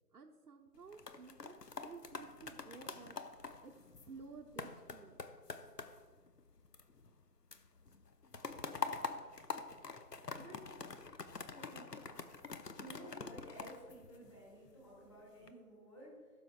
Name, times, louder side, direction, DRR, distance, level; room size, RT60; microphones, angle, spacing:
voice 1, 0.1-3.2 3.6-3.7 4.1-5.2, right 4 dB, 80° right, 0 dB, 0.9 m, -54 dB
sound 1, 0.7-7.2 7.5-14.7 15.2-15.5, left 5 dB, 80° left, 0.9 m, -46 dB
voice 2, 10.3-10.6 11.5-12.2 12.8-16.3, right 1 dB, 20° left, -6 dB, 2.1 m, -54 dB
16.0 x 7.0 x 2.3 m, 1.5 s
figure-of-eight pair, 165°, 47 cm